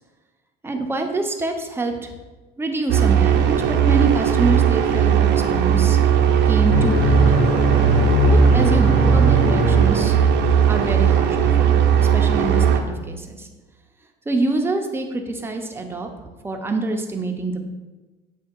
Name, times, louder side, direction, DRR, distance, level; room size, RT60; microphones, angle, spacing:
voice 1, 0.6-2.1 2.6-6.0 6.5-7.2 8.3-10.2 10.7-11.8 12.1-13.5 14.3-16.1 16.4-17.6, right 2 dB, 10° right, 3 dB, 0.7 m, -26 dB
sound 1, 2.9-12.8, right 9 dB, 60° right, 0.7 m, -17 dB
sound 2, 6.7-10.8, left 2 dB, 55° left, 1.8 m, -20 dB
7.4 x 2.8 x 4.5 m, 1.2 s
cardioid pair, 110°, 21 cm